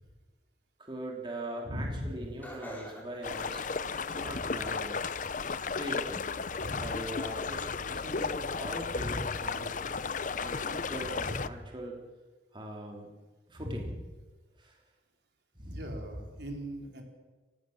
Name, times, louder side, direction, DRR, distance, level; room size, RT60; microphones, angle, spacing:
voice 1, 0.8-3.7 4.1-5.3 5.7-6.4 6.7-9.8 10.4-12.0 12.5-13.1 13.5-13.9 14.6-14.8 15.5-16.0, right 1 dB, 25° right, 0 dB, 3.0 m, -41 dB
voice 2, 1.6-2.3 4.2-4.6 6.6-6.9 8.9-9.2 11.2-11.4 13.6-13.9 15.6-17.0, equal, 70° right, 2 dB, 4.0 m, -39 dB
Laughter, 2.4-4.5 5.0-5.6 6.1-6.2 7.2-7.3, equal, 10° left, 4.6 m, -48 dB
sound 1, 3.2-11.5, left 5 dB, 45° left, 0.7 m, -34 dB
29.5 x 16.0 x 6.5 m, 1.3 s
head